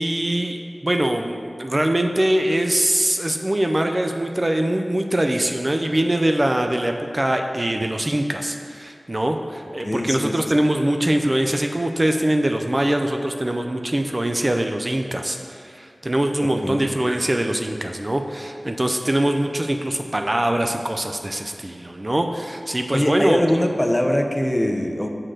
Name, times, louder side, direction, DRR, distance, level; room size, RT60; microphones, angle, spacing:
voice 1, 0.0-23.4, right 1 dB, 30° right, 4 dB, 0.4 m, -23 dB
voice 2, 9.8-10.3 16.6-16.8 22.9-25.1, left 1 dB, 15° left, 4 dB, 0.6 m, -22 dB
6.5 x 3.8 x 6.3 m, 2.3 s
wide cardioid pair, 55°, 0 cm